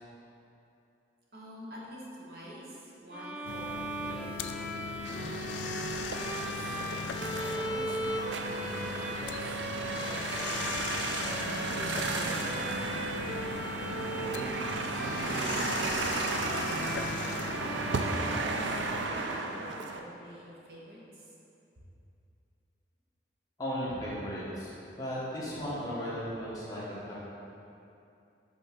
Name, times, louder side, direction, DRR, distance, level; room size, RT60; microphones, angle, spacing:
voice 1, 1.3-6.5 7.4-9.5 10.0-11.2 11.7-15.0 15.7-16.2 16.6-21.3, equal, 55° right, -5 dB, 1.1 m, -47 dB
Bowed string instrument, 3.1-19.2, right 1 dB, 5° right, 0.4 m, -39 dB
sound 1, 3.4-19.1, left 5 dB, 80° left, 0.4 m, -39 dB
sound 2, 5.1-20.0, right 3 dB, 90° right, 0.5 m, -35 dB
voice 2, 23.6-27.1, equal, 20° left, -8 dB, 1.2 m, -36 dB
5.4 x 3.6 x 5.9 m, 2.8 s
head